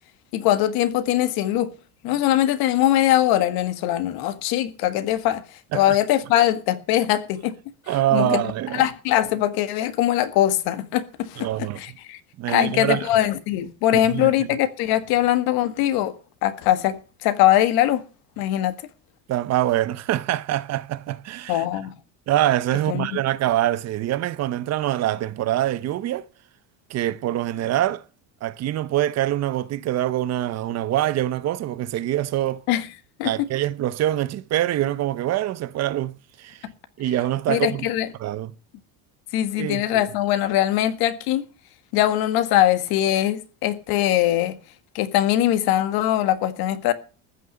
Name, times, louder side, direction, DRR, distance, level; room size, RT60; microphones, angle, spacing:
voice 1, 0.3-1.7 2.0-5.4 5.7-7.5 8.1-8.4 8.7-11.5 11.8-12.2 12.5-16.1 16.4-18.0 18.4-18.7 21.5-21.9 22.9-23.2 32.7-32.9 33.2-33.3 37.5-38.1 39.3-41.4 41.9-44.6 44.9-46.9, left 13 dB, 70° left, 1.7 m, -21 dB
voice 2, 7.9-8.9 11.4-12.0 12.4-13.1 13.9-14.6 19.3-21.6 22.3-26.2 26.9-28.0 28.4-32.6 33.2-36.7 37.0-37.9 38.2-38.5 39.6-40.0, right 13 dB, 45° right, 0.8 m, -24 dB
14.5 x 6.3 x 8.7 m
cardioid pair, 150°, 37 cm